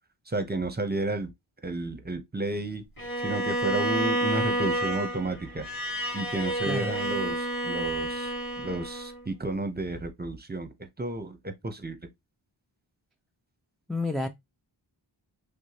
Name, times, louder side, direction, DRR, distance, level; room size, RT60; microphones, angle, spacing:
voice 1, 0.3-1.3 1.6-2.8 3.2-5.7 6.1-12.1, right 2 dB, 20° right, 0.7 m, -32 dB
Bowed string instrument, 3.0-9.2, right 1 dB, 25° left, 2.7 m, -30 dB
voice 2, 13.9-14.3, left 2 dB, ahead, 0.3 m, -29 dB
6.1 x 2.2 x 2.8 m
wide cardioid pair, 60°, 46 cm